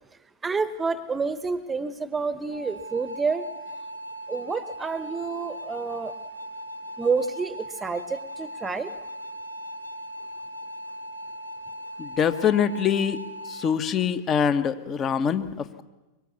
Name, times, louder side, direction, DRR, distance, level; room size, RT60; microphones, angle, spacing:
voice 1, 0.4-3.5 4.3-6.1 7.0-8.9, right 4 dB, 15° right, 14 dB, 1.1 m, -28 dB
sound 1, 2.5-13.7, equal, 90° right, 1.4 m, -39 dB
voice 2, 12.0-13.2 13.5-15.8, left 7 dB, 30° left, 10 dB, 1.4 m, -24 dB
24.0 x 23.0 x 7.1 m, 1.1 s
figure-of-eight pair, 90°, 0 cm